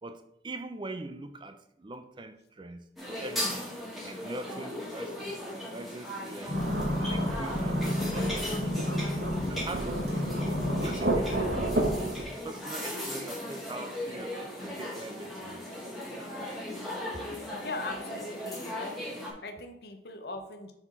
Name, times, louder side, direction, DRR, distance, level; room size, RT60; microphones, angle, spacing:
voice 1, 0.0-3.7 4.0-5.4 5.7-6.7 7.0-8.9 9.4-10.4 10.8-14.3 14.6-15.7, right 2 dB, 25° right, 9 dB, 0.5 m, -42 dB
sound 1, 3.0-19.3, left 1 dB, ahead, 1.6 m, -38 dB
sound 2, 6.5-9.6 10.0-11.0 11.5-11.6, left 1 dB, 30° left, 0.5 m, -31 dB
Thunderstorm / Rain, 6.5-12.2, right 1 dB, 60° right, 1.1 m, -32 dB
voice 2, 17.2-19.1 19.4-20.7, left 2 dB, 60° left, 6 dB, 0.8 m, -40 dB
5.6 x 4.9 x 4.0 m, 0.79 s
head